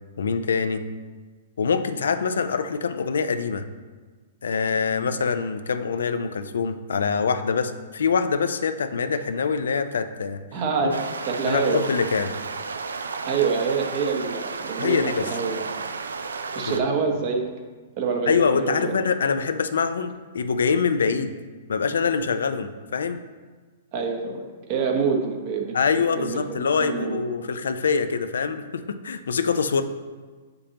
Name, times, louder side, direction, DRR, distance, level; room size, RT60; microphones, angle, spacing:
voice 1, 0.2-0.8 1.6-3.7 4.4-10.4 10.8-11.0 11.5-12.3 14.8-15.3 16.6-16.9 18.3-21.3 21.7-23.2 25.7-29.8, left 5 dB, 80° left, 10 dB, 0.4 m, -24 dB
voice 2, 10.5-11.8 13.3-15.6 16.5-17.4 18.0-18.9 23.9-25.7 26.2-27.2, right 5 dB, 45° right, 2 dB, 1.0 m, -26 dB
sound 1, 10.9-16.8, right 4 dB, 90° right, 0.4 m, -33 dB
6.8 x 5.2 x 2.9 m, 1.4 s
hypercardioid pair, 125°, 0 cm